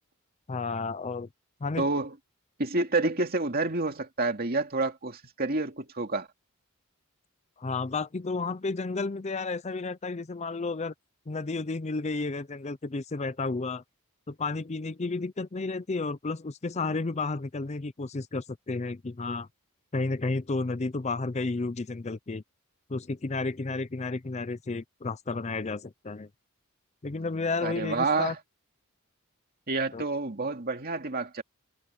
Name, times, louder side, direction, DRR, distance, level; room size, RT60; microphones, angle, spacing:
voice 1, 0.5-1.3 1.6-1.9 7.6-10.9 11.3-13.8 14.3-19.5 19.9-22.4 22.9-26.3 27.0-28.3 29.9-30.0, left 3 dB, 30° left, 0.5 m, -32 dB
voice 2, 1.8-2.1 2.6-6.3 27.6-28.3 29.7-31.4, right 3 dB, 45° right, 2.4 m, -28 dB
head